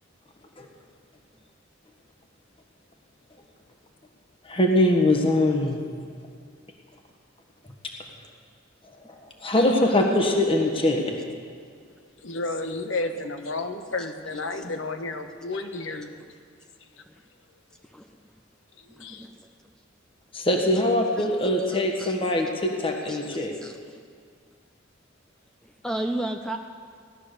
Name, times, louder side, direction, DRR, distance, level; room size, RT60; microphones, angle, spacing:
voice 1, 4.4-5.8 9.1-9.2 9.4-11.2 20.3-23.5, left 1 dB, 30° left, 2 dB, 1.5 m, -22 dB
voice 2, 12.2-16.1 18.8-19.3, left 2 dB, 75° left, 7 dB, 1.2 m, -32 dB
voice 3, 19.0-19.4 21.2-21.3 21.7-22.1 23.1-24.0 25.6-26.6, right 1 dB, 5° left, 4 dB, 0.6 m, -34 dB
17.5 x 12.0 x 6.7 m, 2.1 s
head